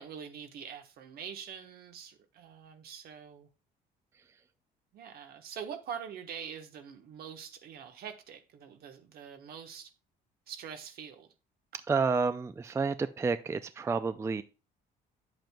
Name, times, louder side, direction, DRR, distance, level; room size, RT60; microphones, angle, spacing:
voice 1, 0.0-3.5 4.9-9.9 10.5-11.3, right 7 dB, 65° right, 1.2 m, -44 dB
voice 2, 11.9-14.4, right 4 dB, 15° right, 0.4 m, -30 dB
9.0 x 7.7 x 2.3 m
cardioid pair, 110°, 17 cm